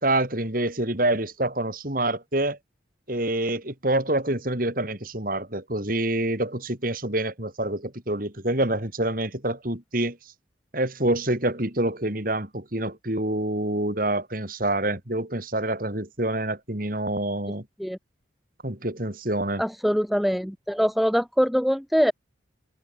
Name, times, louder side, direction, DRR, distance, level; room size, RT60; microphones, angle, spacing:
voice 1, 0.0-2.6 3.1-10.2 10.7-17.6 18.6-19.6, right 1 dB, 45° right, 3.7 m, -26 dB
voice 2, 19.6-22.1, equal, ahead, 5.3 m, -23 dB
head